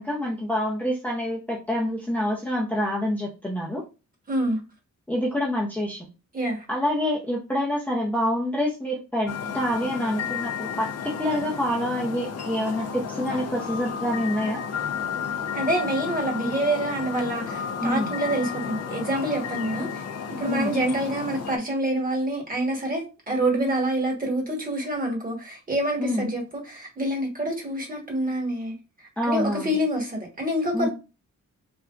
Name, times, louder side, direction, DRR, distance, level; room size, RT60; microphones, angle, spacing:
voice 1, 0.0-3.8 5.1-6.1 6.7-14.6 17.8-18.1 20.5-20.7 26.0-26.3 29.2-29.8 30.7-30.9, left 1 dB, 5° left, 0.6 m, -27 dB
voice 2, 4.3-4.6 6.3-6.6 15.5-20.0 20.4-28.7 29.2-30.9, right 1 dB, 25° right, 1.2 m, -27 dB
sound 1, 9.3-21.6, left 6 dB, 55° left, 0.5 m, -32 dB
3.3 x 2.8 x 2.4 m
wide cardioid pair, 165°, 31 cm